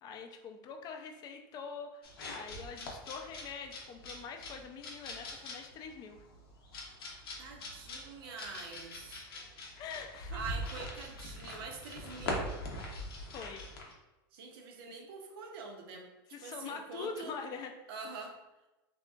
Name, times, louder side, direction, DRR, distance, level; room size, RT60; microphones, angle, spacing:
voice 1, 0.0-6.2 9.8-10.5 13.3-13.6 16.3-17.8 18.2-18.3, left 5 dB, 35° left, 5 dB, 0.3 m, -44 dB
sound 1, 2.0-13.9, left 1 dB, 85° left, 0.6 m, -42 dB
voice 2, 7.4-9.2 10.3-12.6 14.3-16.1 16.4-17.3 17.9-18.4, right 5 dB, 75° right, 2 dB, 0.6 m, -45 dB
2.8 x 2.5 x 2.3 m, 1.0 s
supercardioid pair, 125°, 12 cm